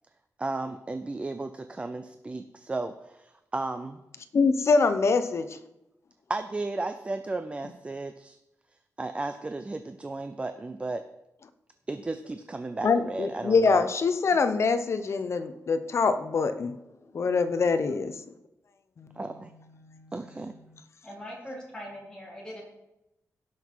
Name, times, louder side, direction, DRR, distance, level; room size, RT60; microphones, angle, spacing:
voice 1, 0.4-4.0 6.3-8.4 9.0-11.0 11.9-13.9 19.2-19.5 20.1-20.5, right 2 dB, 20° right, 8 dB, 0.5 m, -34 dB
voice 2, 4.3-5.5 12.8-16.7 17.1-18.1 19.0-19.2 19.8-20.1, left 4 dB, 50° left, 10 dB, 0.8 m, -24 dB
voice 3, 21.0-22.6, equal, 15° left, -5 dB, 3.8 m, -41 dB
17.0 x 6.0 x 4.7 m, 0.91 s
wide cardioid pair, 150°, 6 cm